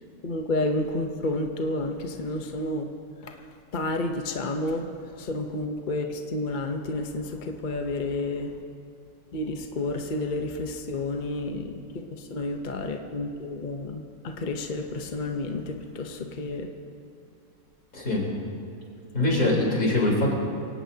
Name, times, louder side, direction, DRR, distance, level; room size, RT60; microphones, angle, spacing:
voice 1, 0.0-2.9 3.2-3.4 3.7-8.5 9.3-16.7 19.2-19.5, left 2 dB, 40° left, 4 dB, 0.9 m, -31 dB
voice 2, 17.9-18.2 19.1-20.3, left 1 dB, 70° left, -3 dB, 4.3 m, -23 dB
24.5 x 17.5 x 2.8 m, 2.5 s
omnidirectional pair, 1.5 m